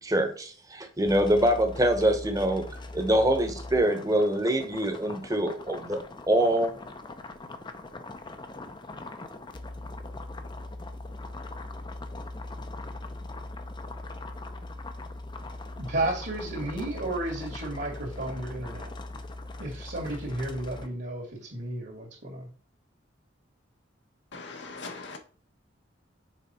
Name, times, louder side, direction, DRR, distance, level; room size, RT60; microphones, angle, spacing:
voice 1, 0.0-2.7 2.9-6.7, right 1 dB, 20° right, 6 dB, 1.0 m, -24 dB
sound 1, 1.0-20.9, left 2 dB, 25° left, 0.6 m, -40 dB
voice 2, 15.8-18.9 19.6-22.5, right 2 dB, 65° right, -3 dB, 2.1 m, -33 dB
voice 3, 24.3-25.2, left 3 dB, 70° left, 3 dB, 1.2 m, -40 dB
6.4 x 4.6 x 4.3 m, 0.41 s
head